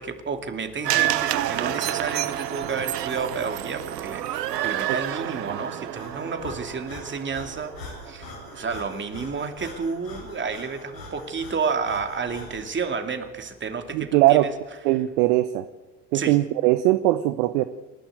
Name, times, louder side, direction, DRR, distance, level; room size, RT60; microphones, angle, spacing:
voice 1, 0.0-7.7 8.0-14.5 16.1-16.4, right 5 dB, 25° right, 6 dB, 2.8 m, -31 dB
sound 1, 0.8-9.1 9.5-9.6, right 12 dB, 75° right, 1.3 m, -29 dB
Breathing, 5.9-12.7, left 3 dB, 85° left, 7.9 m, -43 dB
voice 2, 13.9-14.5 14.8-15.7 16.1-17.6, right 16 dB, 60° right, 12 dB, 1.1 m, -20 dB
28.5 x 11.5 x 7.9 m, 1.1 s
hypercardioid pair, 80°, 48 cm